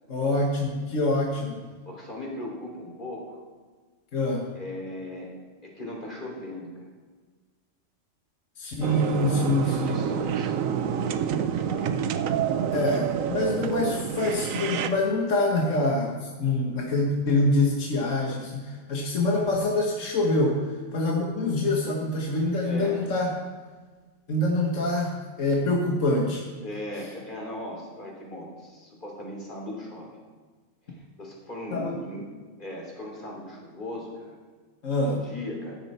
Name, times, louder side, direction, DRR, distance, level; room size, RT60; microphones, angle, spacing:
voice 1, 0.1-1.7 4.1-4.5 8.6-10.0 12.7-23.3 24.3-26.4 26.9-27.1 31.7-32.0 34.8-35.2, left 2 dB, 70° left, -1 dB, 1.9 m, -25 dB
voice 2, 1.9-3.4 4.5-5.3 5.6-6.9 9.5-12.4 22.5-23.0 26.6-30.1 30.9-32.3 32.6-34.4 35.0-35.8, left 1 dB, 40° left, -2 dB, 3.4 m, -38 dB
sound 1, 8.8-14.9, right 8 dB, 80° right, 1.1 m, -28 dB
15.0 x 10.0 x 4.4 m, 1.4 s
omnidirectional pair, 1.4 m